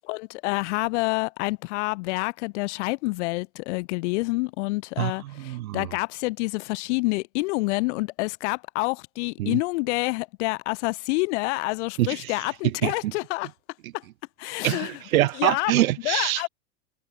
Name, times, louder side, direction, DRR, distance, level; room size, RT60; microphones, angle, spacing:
voice 1, 0.1-13.5 13.9-14.0 14.4-15.0 15.3-15.7 16.0-16.5, left 24 dB, 55° left, 1.4 m, -28 dB
voice 2, 5.0-5.9 9.4-9.6 12.0-12.3 12.6-13.1 14.6-16.4, right 16 dB, 75° right, 2.9 m, -25 dB
supercardioid pair, 140°, 42 cm